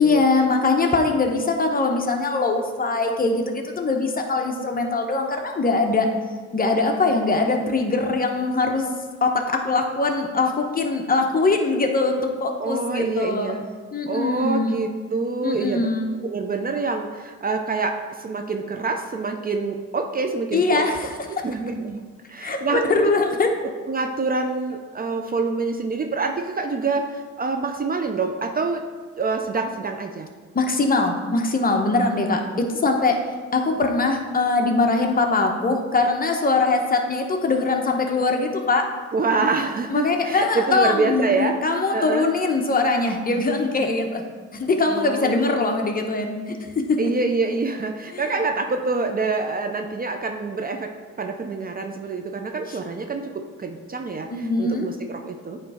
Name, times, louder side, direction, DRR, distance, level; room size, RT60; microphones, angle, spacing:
voice 1, 0.0-6.1 6.5-8.9 9.2-13.5 13.9-14.8 15.4-16.1 20.5-21.5 22.4-23.5 30.5-33.2 33.5-38.9 39.4-39.5 39.9-44.2 44.5-47.0 48.1-48.2 54.3-54.9, left 3 dB, 30° left, 3 dB, 0.9 m, -22 dB
voice 2, 12.6-13.6 14.1-15.9 16.2-20.8 21.4-22.0 22.3-22.9 23.9-28.8 29.2-30.3 39.1-41.6 41.9-42.3 44.9-45.9 47.0-50.9 51.2-55.6, right 4 dB, 30° right, 5 dB, 0.5 m, -26 dB
9.1 x 3.2 x 4.9 m, 1.4 s
cardioid pair, 90°, 30 cm